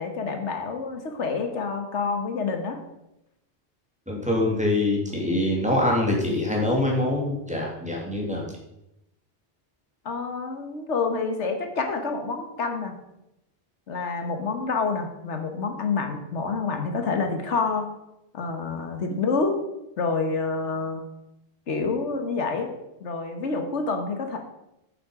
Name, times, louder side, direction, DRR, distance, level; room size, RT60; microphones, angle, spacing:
voice 1, 0.0-2.8 10.0-12.9 13.9-17.9 18.3-19.6 20.0-21.0 21.7-22.7 23.0-24.4, left 4 dB, 90° left, 5 dB, 1.6 m, -28 dB
voice 2, 4.1-8.4 19.1-19.2, left 1 dB, 5° right, -2 dB, 2.3 m, -24 dB
8.7 x 7.9 x 4.9 m, 0.87 s
omnidirectional pair, 1.2 m